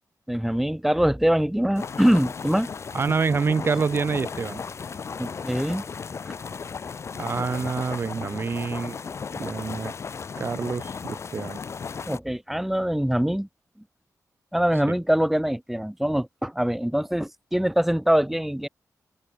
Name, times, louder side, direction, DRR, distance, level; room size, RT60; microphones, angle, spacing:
voice 1, 0.3-2.7 5.2-5.8 12.1-13.5 14.5-18.7, equal, 5° right, 1.3 m, -23 dB
sound 1, 1.7-12.2, left 5 dB, 45° left, 1.0 m, -35 dB
voice 2, 2.9-4.6 7.2-9.0 9.4-9.9 10.4-11.6, right 5 dB, 35° right, 0.5 m, -27 dB
open air
wide cardioid pair, 135°, 7 cm